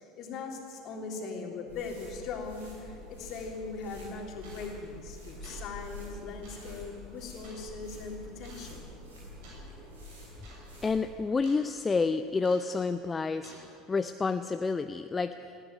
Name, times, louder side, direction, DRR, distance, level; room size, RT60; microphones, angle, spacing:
voice 1, 0.0-8.9, left 4 dB, 45° left, 1 dB, 3.5 m, -40 dB
sound 1, 1.7-11.2, left 1 dB, 75° right, 6.9 m, -47 dB
sound 2, 3.5-3.6 4.4-4.8 5.2-5.7 6.4-6.7 7.4-7.6 8.4-8.7 9.4-9.7 10.0-10.1 10.4-10.6 10.9-11.6 12.4-12.8 13.4-13.7, right 2 dB, 55° right, 7.0 m, -52 dB
voice 2, 10.8-13.5 13.9-15.3, left 4 dB, 20° left, 10 dB, 0.6 m, -29 dB
20.0 x 15.0 x 9.4 m, 2.4 s
figure-of-eight pair, 70°, 0 cm